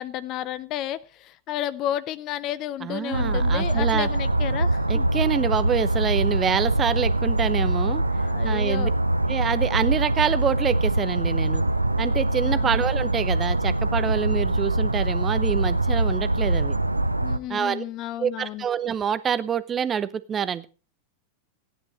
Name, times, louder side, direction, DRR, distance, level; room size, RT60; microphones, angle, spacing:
voice 1, 0.0-5.1 8.2-8.9 12.4-12.7 17.2-18.6, left 12 dB, 35° left, 18 dB, 0.6 m, -32 dB
voice 2, 2.8-4.1 4.9-8.0 8.4-8.9 9.3-11.6 12.0-16.8 17.5-17.8 18.2-20.6, right 8 dB, 25° right, 16 dB, 0.8 m, -26 dB
sound 1, 3.1-17.4, right 2 dB, 85° right, 0.7 m, -23 dB
14.5 x 10.0 x 4.9 m, 0.34 s
figure-of-eight pair, 90°, 0 cm